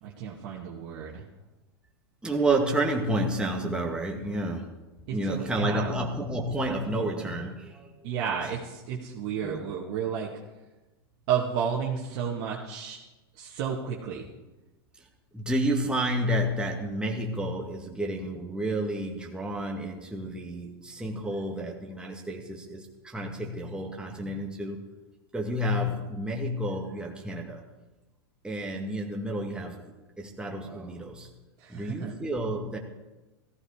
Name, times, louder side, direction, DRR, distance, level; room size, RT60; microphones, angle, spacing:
voice 1, 0.0-1.2 5.1-5.9 8.0-10.3 11.3-13.0 13.4-14.3 31.6-32.1, right 7 dB, 55° right, -4 dB, 2.3 m, -32 dB
voice 2, 2.2-4.7 5.1-7.9 9.4-9.7 15.3-24.8 25.3-27.6 28.4-29.9 30.2-31.3 31.7-32.8, right 1 dB, 5° right, 0 dB, 2.1 m, -30 dB
15.5 x 15.0 x 5.1 m, 1.1 s
hypercardioid pair, 105°, 13 cm